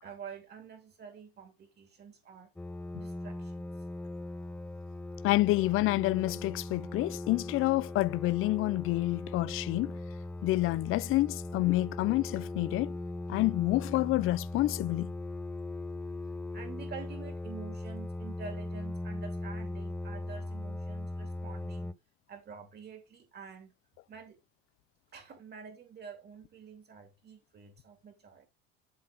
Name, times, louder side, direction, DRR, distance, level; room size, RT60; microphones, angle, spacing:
voice 1, 0.0-2.5 2.9-3.7 16.5-21.9 22.3-23.7 24.1-24.4 25.1-28.5, right 6 dB, 35° right, 2.9 m, -48 dB
sound 1, 2.6-21.9, left 2 dB, 5° left, 0.6 m, -39 dB
voice 2, 5.2-10.0 10.4-13.0 13.3-15.1, left 19 dB, 45° left, 0.4 m, -28 dB
7.8 x 3.6 x 5.3 m
supercardioid pair, 115°, 29 cm